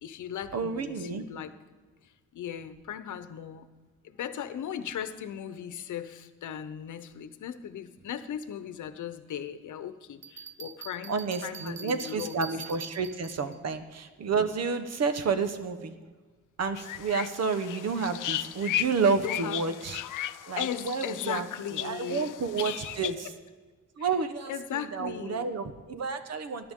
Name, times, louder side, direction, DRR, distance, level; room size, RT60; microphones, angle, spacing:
voice 1, 0.0-1.5 2.3-3.7 4.0-12.4 15.2-15.3 19.1-19.6 20.2-23.0 24.5-25.5, left 9 dB, 70° left, 11 dB, 0.9 m, -37 dB
voice 2, 0.5-1.3 11.1-15.9 16.6-20.0 20.5-21.5 21.7-23.1 24.0-26.7, right 5 dB, 55° right, 9 dB, 1.1 m, -30 dB
Bell, 10.2-13.6, right 7 dB, 40° right, 0.6 m, -44 dB
sound 1, 16.8-23.1, left 12 dB, 90° left, 0.6 m, -36 dB
19.5 x 11.0 x 3.7 m, 1.4 s
cardioid pair, 125°, 31 cm